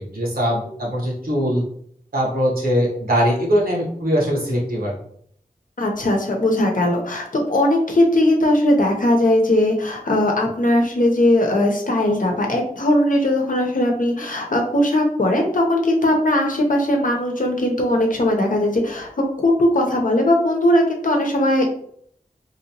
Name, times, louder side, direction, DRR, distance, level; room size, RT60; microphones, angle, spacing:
voice 1, 0.0-1.6 2.1-4.9, equal, 80° right, -3 dB, 1.2 m, -21 dB
voice 2, 5.8-19.1 19.4-21.6, left 1 dB, 60° left, 2 dB, 0.8 m, -19 dB
3.0 x 2.9 x 2.9 m, 0.64 s
wide cardioid pair, 60°, 15 cm